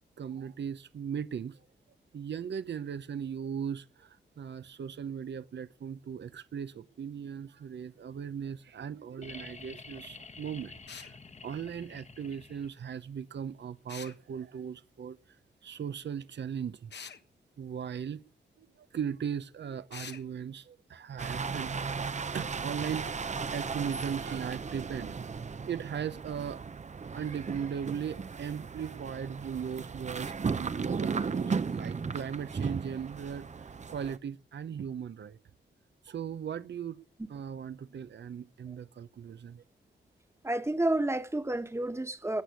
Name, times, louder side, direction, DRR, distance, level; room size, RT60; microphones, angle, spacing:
voice 1, 0.2-1.6 2.1-11.2 11.4-15.2 15.6-16.9 17.6-18.2 18.6-21.9 22.3-25.4 25.6-26.7 27.1-35.4 36.0-37.0 37.3-39.6, right 8 dB, 70° right, 0.8 m, -38 dB
sound 1, 9.2-13.0 14.7-14.8, left 4 dB, 35° left, 1.3 m, -49 dB
sound 2, 10.9-11.1 13.9-14.2 16.9-17.2 19.9-20.2, left 6 dB, 65° left, 1.3 m, -44 dB
sound 3, 21.2-34.2, right 5 dB, 40° right, 0.7 m, -36 dB
voice 2, 40.4-42.4, right 1 dB, 15° right, 1.4 m, -30 dB
19.0 x 6.3 x 9.6 m
cardioid pair, 80°, 19 cm